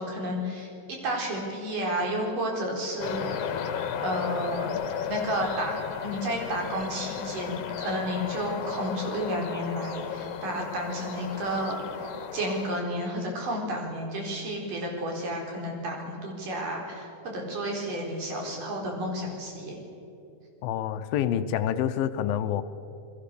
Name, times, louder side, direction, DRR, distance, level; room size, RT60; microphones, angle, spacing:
voice 1, 0.0-3.6 4.0-4.7 5.1-19.8, equal, 60° right, 0 dB, 5.9 m, -31 dB
sound 1, 3.0-12.8, left 8 dB, 60° left, 2.8 m, -34 dB
voice 2, 20.6-22.6, left 10 dB, 80° left, 10 dB, 2.5 m, -27 dB
29.0 x 21.0 x 6.9 m, 2.8 s
omnidirectional pair, 4.2 m